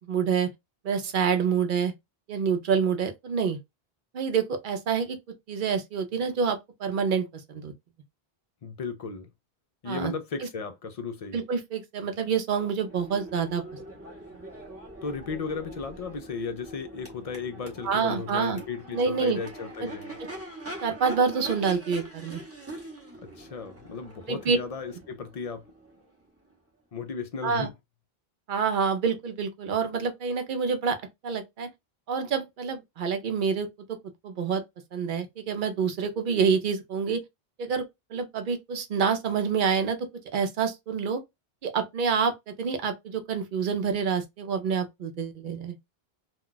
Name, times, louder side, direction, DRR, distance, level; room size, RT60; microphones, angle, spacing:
voice 1, 0.1-0.5 0.8-1.9 2.3-3.6 4.1-5.2 5.5-7.7 9.9-10.1 11.3-13.6 17.8-18.6 18.9-19.4 20.8-22.4 24.3-24.6 27.4-27.7 28.5-31.0 31.2-31.7 32.1-34.0 34.2-34.6 34.9-37.2 37.6-37.9 38.1-41.2 41.6-45.8, right 6 dB, 60° right, 0.7 m, -27 dB
voice 2, 8.6-9.3 9.8-11.4 15.0-20.1 23.2-25.6 26.9-27.7, left 5 dB, 55° left, 0.4 m, -35 dB
Crowd / Race car auto racing / Accelerating revving vroom, 12.7-26.6, right 1 dB, 15° right, 0.7 m, -43 dB
2.3 x 2.2 x 3.8 m
omnidirectional pair, 1.0 m